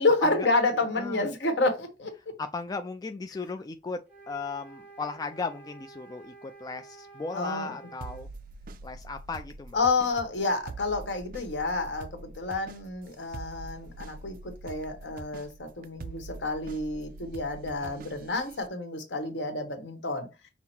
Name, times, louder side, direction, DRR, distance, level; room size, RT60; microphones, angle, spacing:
voice 1, 0.0-2.1 7.3-7.7 9.7-20.3, left 3 dB, 75° left, 1.2 m, -29 dB
voice 2, 1.0-1.3 2.4-8.3 8.8-9.8 17.8-18.0, left 4 dB, 20° left, 0.3 m, -36 dB
sound 1, 4.1-8.2, right 4 dB, 10° right, 1.2 m, -50 dB
sound 2, 8.0-18.7, right 3 dB, 50° right, 0.4 m, -45 dB
5.6 x 2.0 x 4.4 m
head